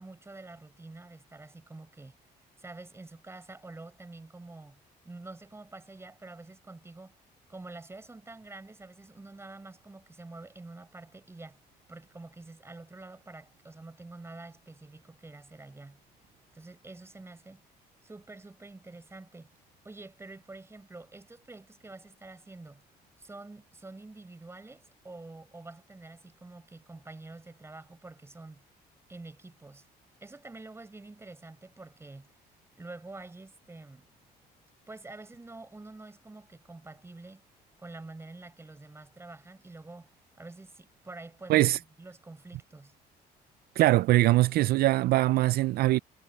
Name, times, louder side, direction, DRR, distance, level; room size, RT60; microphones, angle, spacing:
voice 1, 0.0-2.1 2.6-7.2 7.5-11.6 11.9-16.0 16.5-17.6 18.0-19.5 19.8-22.8 23.2-28.7 29.1-29.9 30.2-32.3 32.8-34.1 34.9-37.4 37.8-41.7 42.0-42.9, right 2 dB, 15° right, 6.7 m, -47 dB
voice 2, 43.8-46.0, right 17 dB, 65° right, 0.4 m, -22 dB
cardioid pair, 110°, 17 cm